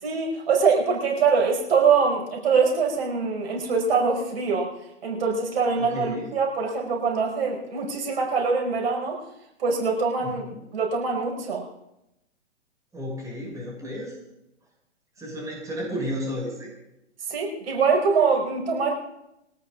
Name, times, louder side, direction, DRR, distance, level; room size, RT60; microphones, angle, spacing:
voice 1, 0.0-4.7 5.0-9.2 9.6-10.5 10.7-11.7 17.3-18.9, right 5 dB, 60° right, 0 dB, 5.5 m, -23 dB
voice 2, 5.7-6.3 10.2-10.6 12.9-14.2 15.2-16.7, equal, 10° right, -3 dB, 5.8 m, -33 dB
22.5 x 18.5 x 2.5 m, 0.86 s
hypercardioid pair, 125°, 35 cm